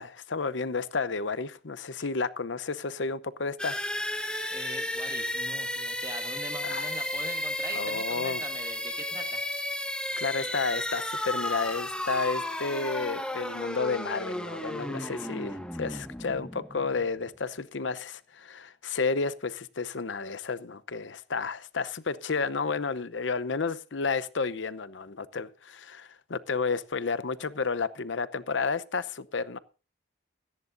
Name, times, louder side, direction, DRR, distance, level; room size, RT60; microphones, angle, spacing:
voice 1, 0.0-3.8 6.6-6.9 7.7-8.4 10.2-29.6, left 4 dB, 75° left, 0.8 m, -31 dB
sound 1, 3.6-17.3, left 1 dB, 5° left, 1.6 m, -33 dB
voice 2, 4.2-9.4, right 2 dB, 15° right, 2.1 m, -42 dB
17.0 x 15.0 x 2.6 m
head